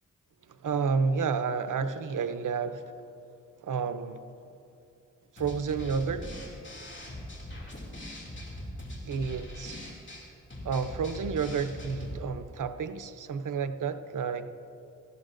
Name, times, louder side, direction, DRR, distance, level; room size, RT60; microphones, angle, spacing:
voice 1, 0.5-2.8 3.6-4.2 5.3-6.3 9.0-9.8 10.6-14.5, right 5 dB, 85° right, 10 dB, 0.6 m, -30 dB
sound 1, 5.4-12.2, left 1 dB, 40° left, 2.5 m, -41 dB
17.5 x 14.0 x 2.6 m, 2.6 s
wide cardioid pair, 60°, 30 cm